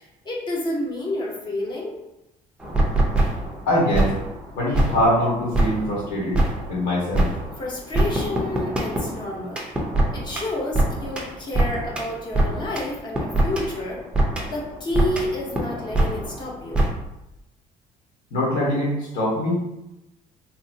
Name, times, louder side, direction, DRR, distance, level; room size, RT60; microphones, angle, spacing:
voice 1, 0.0-1.9 7.6-9.6 10.1-14.0 14.4-16.8, left 1 dB, 30° left, -3 dB, 0.9 m, -29 dB
sound 1, 2.6-3.6 3.9-4.5 4.7-7.6 7.9-12.9 13.2-14.7 14.9-16.4 16.7-16.9, right 1 dB, 5° right, 0.5 m, -23 dB
voice 2, 3.7-4.1 4.5-6.4 6.7-7.3 18.3-19.6, left 1 dB, 80° left, -5 dB, 1.3 m, -22 dB
3.0 x 2.6 x 2.7 m, 0.91 s
cardioid pair, 140°, 14 cm